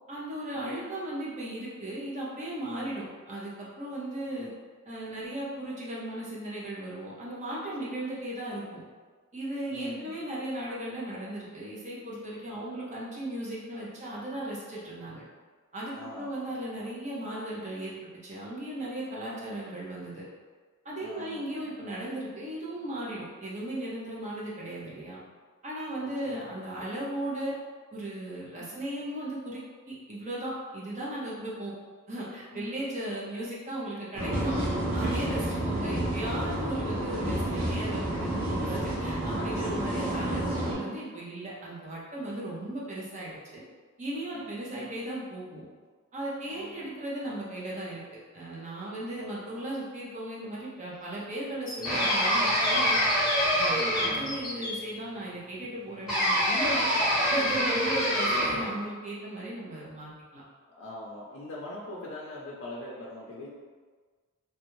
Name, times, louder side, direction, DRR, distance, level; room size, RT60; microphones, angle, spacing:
voice 1, 0.1-4.5 4.9-8.8 9.3-15.2 15.7-18.0 18.2-20.3 20.8-25.2 25.6-27.5 27.9-29.6 29.9-31.7 32.1-34.6 34.9-43.6 44.0-45.7 46.1-48.0 48.3-53.0 53.5-56.9 57.3-60.4, right 1 dB, 35° right, -6 dB, 0.8 m, -36 dB
voice 2, 9.7-10.1 12.5-12.7 15.9-16.4 19.3-19.6 21.0-21.6 26.0-26.5 28.6-28.8 32.5-32.9 44.3-44.9 46.5-46.9 49.1-49.6 53.7-54.0 56.9-57.3 58.0-58.2 60.8-63.5, left 1 dB, 70° left, -5 dB, 0.5 m, -43 dB
sound 1, 34.1-40.7, right 1 dB, 90° right, 1.2 m, -30 dB
sound 2, 51.7-54.8, left 3 dB, 20° left, 0.4 m, -34 dB
sound 3, 51.8-54.4 56.1-58.7, equal, 5° right, 1.2 m, -25 dB
3.3 x 2.5 x 3.0 m, 1.5 s
head